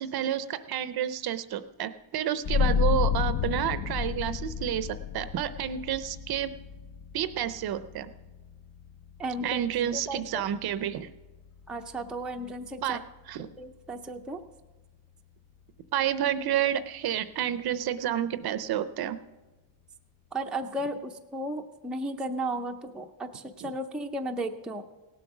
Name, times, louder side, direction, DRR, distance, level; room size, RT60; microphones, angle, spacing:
voice 1, 0.0-6.5 7.1-8.1 9.4-11.1 12.8-13.0 13.3-13.5 15.9-19.2 23.6-23.7, right 10 dB, 50° right, 13 dB, 0.6 m, -30 dB
sound 1, 2.4-13.7, left 7 dB, 40° left, 0.6 m, -33 dB
voice 2, 9.2-9.6 9.9-10.4 11.7-13.0 13.6-14.4 20.3-24.8, right 1 dB, ahead, 3 dB, 0.5 m, -34 dB
17.5 x 7.9 x 6.0 m, 1.2 s
cardioid pair, 135°, 50 cm